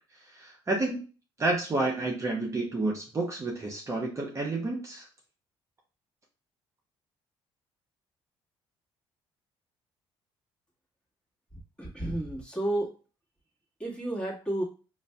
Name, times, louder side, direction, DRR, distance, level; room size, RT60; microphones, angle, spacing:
voice 1, 0.3-1.0 1.4-5.1, right 2 dB, 30° right, -1 dB, 0.8 m, -30 dB
voice 2, 11.8-12.9 13.8-14.6, right 1 dB, 10° left, -4 dB, 1.5 m, -31 dB
5.1 x 2.5 x 2.2 m, 0.36 s
supercardioid pair, 80°, 11 cm